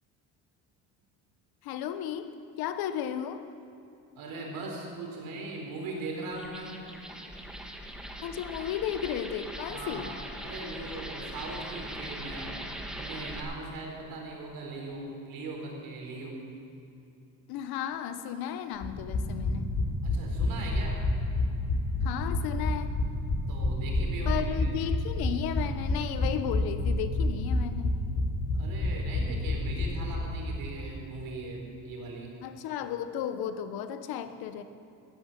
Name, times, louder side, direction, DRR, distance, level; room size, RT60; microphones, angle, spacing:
voice 1, 1.6-2.3 2.6-3.4 8.2-10.1 17.5-19.7 22.0-22.9 24.2-28.0 32.4-34.6, left 9 dB, 70° left, 10 dB, 1.2 m, -34 dB
voice 2, 4.1-6.8 9.7-12.6 13.0-16.4 20.0-21.0 23.5-24.7 28.5-32.3, right 2 dB, 65° right, 0 dB, 4.5 m, -39 dB
sound 1, 6.3-13.4, right 1 dB, ahead, 1.9 m, -41 dB
sound 2, 18.8-30.5 30.8-30.9 31.1-31.2, left 2 dB, 50° left, 4.2 m, -28 dB
14.5 x 12.0 x 7.6 m, 2.7 s
supercardioid pair, 90°, 38 cm